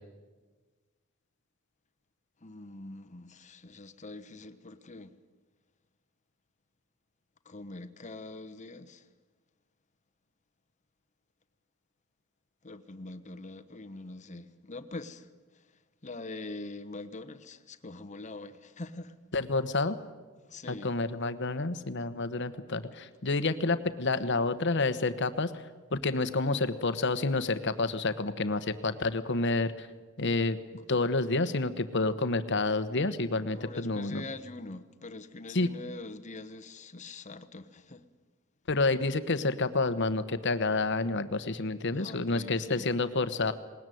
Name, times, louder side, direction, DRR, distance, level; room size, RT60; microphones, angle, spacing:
voice 1, 2.4-5.2 7.4-9.1 12.6-19.2 20.4-20.9 33.5-38.1 42.0-42.9, left 2 dB, 35° left, 1.1 m, -44 dB
voice 2, 19.3-20.0 20.7-25.6 25.9-29.9 30.2-30.6 30.9-34.2 35.5-35.7 38.7-43.5, left 3 dB, 60° left, 1.2 m, -29 dB
20.5 x 19.5 x 9.3 m
head